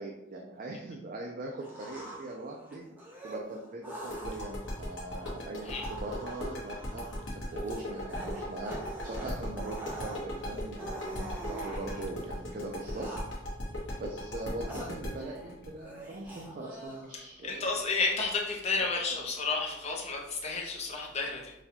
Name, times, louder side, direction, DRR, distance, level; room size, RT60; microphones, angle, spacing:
voice 1, 0.0-2.8 3.2-13.1 14.0-17.7 18.8-19.3 21.3-21.4, right 2 dB, 45° right, 0 dB, 0.4 m, -41 dB
sound 1, 1.6-12.2 12.8-13.6 14.1-15.5 15.8-17.3, right 1 dB, 10° right, 0.7 m, -45 dB
sound 2, 4.1-16.8, left 1 dB, 80° left, 1.0 m, -37 dB
voice 2, 17.4-21.5, left 4 dB, 35° left, -1 dB, 0.6 m, -31 dB
4.0 x 2.3 x 2.8 m, 0.90 s
head